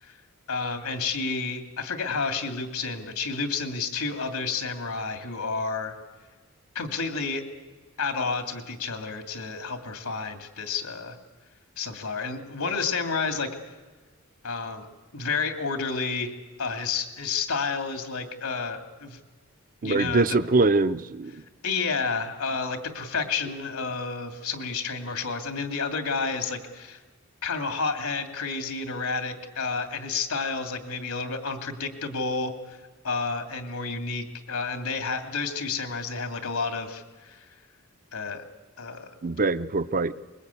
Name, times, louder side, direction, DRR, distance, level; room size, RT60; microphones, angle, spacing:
voice 1, 0.5-5.9 6.7-7.4 8.0-11.2 11.8-13.5 14.4-14.9 15.1-16.3 16.6-19.2 19.8-20.4 21.6-27.0 27.4-32.8 33.0-37.5 38.1-38.4 38.8-39.1, left 4 dB, 85° left, 6 dB, 2.8 m, -30 dB
voice 2, 19.8-21.4 39.2-40.1, right 3 dB, 40° right, 14 dB, 0.7 m, -23 dB
25.0 x 21.5 x 8.5 m, 1.3 s
head